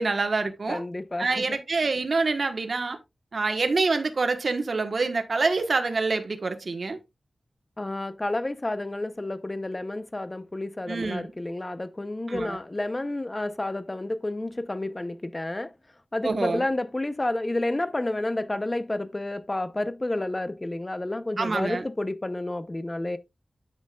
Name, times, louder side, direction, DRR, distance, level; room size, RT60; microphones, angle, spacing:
voice 1, 0.0-0.8 1.2-3.0 3.3-7.0 10.9-11.3 12.3-12.6 16.2-16.6 21.4-21.8, right 3 dB, 60° right, 1.3 m, -26 dB
voice 2, 0.7-1.6 7.8-15.7 16.1-23.2, left 2 dB, 25° left, 0.8 m, -30 dB
9.4 x 7.5 x 2.4 m
wide cardioid pair, 100°, 0 cm